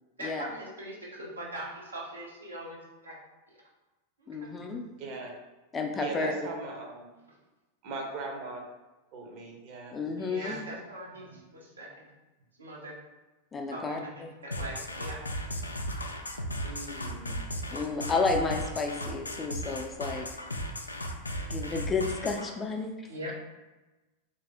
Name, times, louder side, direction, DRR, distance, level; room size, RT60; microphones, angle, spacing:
voice 1, 0.2-3.2 3.5-3.6 4.2-4.5 10.2-12.1 12.6-12.9 13.7-15.2 15.9-16.2 16.6-16.8 23.1-23.4, right 1 dB, 75° right, -4 dB, 0.9 m, -41 dB
voice 2, 4.3-4.9 5.7-6.3 9.9-10.6 13.5-14.3 17.7-20.3 21.5-22.9, left 4 dB, 20° left, 3 dB, 0.5 m, -31 dB
voice 3, 5.0-5.3 6.0-7.1 7.8-8.6 9.1-10.0 10.4-10.6 11.2-11.4 16.6-17.4, right 3 dB, 45° right, 1 dB, 0.8 m, -39 dB
sound 1, 14.5-22.5, equal, 80° left, 0.3 m, -36 dB
3.2 x 2.6 x 3.4 m, 1.1 s
figure-of-eight pair, 90°, 0 cm